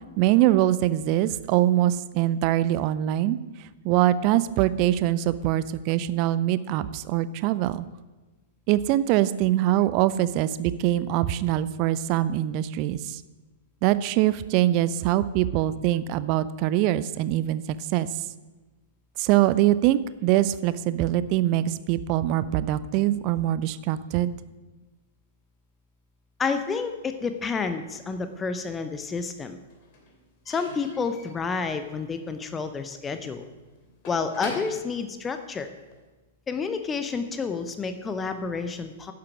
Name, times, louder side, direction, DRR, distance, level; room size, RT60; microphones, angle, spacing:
voice 1, 0.2-3.4 3.8-7.9 8.7-13.2 13.8-18.1 19.2-24.4, right 13 dB, 35° right, 16 dB, 0.5 m, -23 dB
voice 2, 26.4-29.6 30.5-33.4 34.0-35.7 36.5-39.1, left 5 dB, 15° left, 8 dB, 0.7 m, -30 dB
Slam / Squeak / Wood, 28.2-29.0 29.3-36.1, left 2 dB, 40° left, 2.5 m, -44 dB
11.0 x 7.6 x 6.1 m, 1.2 s
figure-of-eight pair, 105°, 0 cm